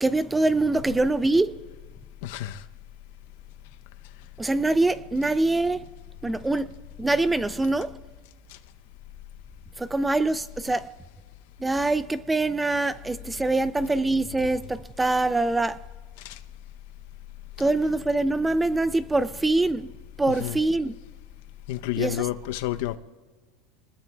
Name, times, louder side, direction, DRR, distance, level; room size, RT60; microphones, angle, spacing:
voice 1, 0.0-1.6 4.4-5.8 6.2-8.0 9.8-10.9 11.6-15.8 17.6-19.9 20.2-21.0 22.0-22.1, right 2 dB, 10° right, 0.4 m, -24 dB
voice 2, 2.2-2.6 8.5-8.6 16.2-16.4 20.3-20.6 21.7-23.0, left 14 dB, 70° left, 0.7 m, -30 dB
26.0 x 19.5 x 2.3 m
supercardioid pair, 120°, 0 cm